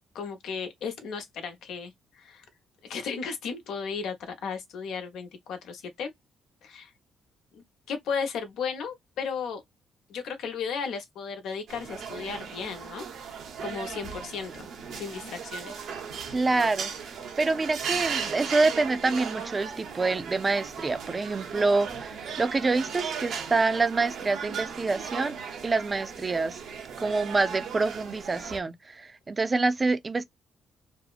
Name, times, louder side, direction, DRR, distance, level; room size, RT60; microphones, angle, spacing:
voice 1, 0.1-2.4 2.8-6.1 6.6-6.9 7.5-9.6 10.1-14.7 14.9-15.8, left 6 dB, 80° left, 0.9 m, -35 dB
sound 1, 11.7-28.6, right 6 dB, 70° right, 0.8 m, -37 dB
voice 2, 16.3-16.9 17.4-25.4 25.6-26.6 27.0-30.2, right 3 dB, 30° right, 0.4 m, -26 dB
2.8 x 2.0 x 2.3 m
cardioid pair, 90°, 0 cm